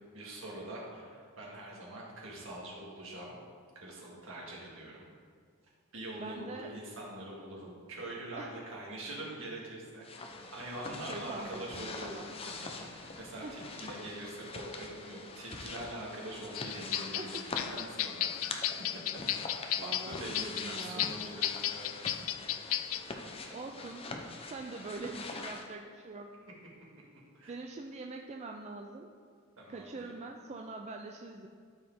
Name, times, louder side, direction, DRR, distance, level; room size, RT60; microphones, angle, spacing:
voice 1, 0.1-3.4 3.8-5.1 5.9-10.1 10.5-12.2 12.9-18.6 19.8-22.0 27.3-27.5 29.6-30.1, right 1 dB, 65° right, -3 dB, 1.9 m, -44 dB
voice 2, 6.2-6.7 8.3-8.5 11.1-12.3 13.4-13.6 17.1-17.5 19.8-21.2 23.5-24.1 24.5-26.3 27.5-29.1 29.7-31.5, right 3 dB, 30° right, 3 dB, 0.4 m, -44 dB
sound 1, 10.0-25.7, left 3 dB, 25° left, 0.6 m, -44 dB
sound 2, 16.5-23.0, left 13 dB, 70° left, 0.3 m, -34 dB
12.5 x 4.8 x 3.6 m, 2.1 s
head